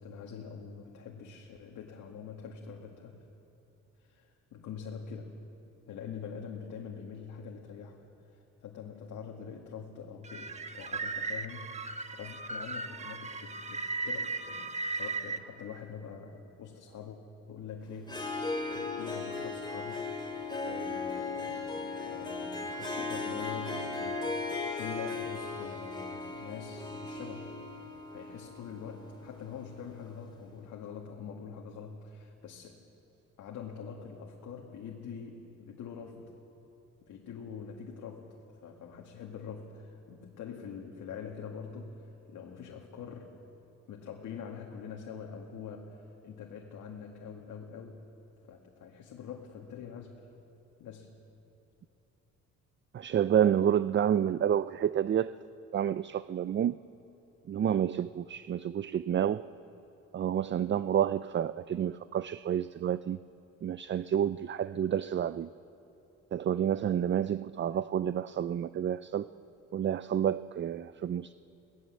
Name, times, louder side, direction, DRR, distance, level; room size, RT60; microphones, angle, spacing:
voice 1, 0.0-3.2 4.0-5.3 5.9-11.8 12.1-17.2 17.5-20.1 20.6-27.5 28.1-32.8 33.4-36.3 37.0-38.4 38.6-43.3 43.9-48.0 48.5-50.3 50.8-51.1, left 6 dB, 80° left, 0 dB, 2.0 m, -44 dB
sound 1, 10.2-15.4, right 3 dB, 20° right, 1.3 m, -37 dB
Harp, 18.0-29.9, left 3 dB, 15° left, 3.9 m, -37 dB
voice 2, 52.9-55.4 55.7-56.8 57.5-59.5 60.1-63.2 63.6-65.5 66.3-69.3 69.7-71.3, right 9 dB, 40° right, 15 dB, 0.4 m, -29 dB
23.5 x 18.5 x 7.5 m, 3.0 s
cardioid pair, 90°, 30 cm